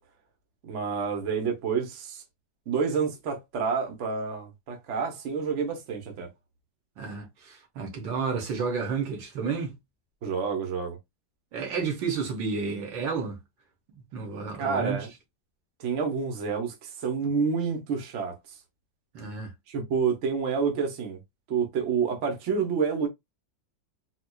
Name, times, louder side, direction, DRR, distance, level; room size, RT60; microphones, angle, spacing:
voice 1, 0.6-2.2 2.7-6.3 10.2-11.0 14.6-15.1 15.8-18.3 19.7-21.2 21.5-23.1, right 5 dB, 50° right, 1.1 m, -28 dB
voice 2, 7.0-9.7 11.5-13.4 13.9-15.0 19.1-19.5, right 5 dB, 85° right, 1.8 m, -31 dB
4.3 x 2.4 x 2.3 m
omnidirectional pair, 2.0 m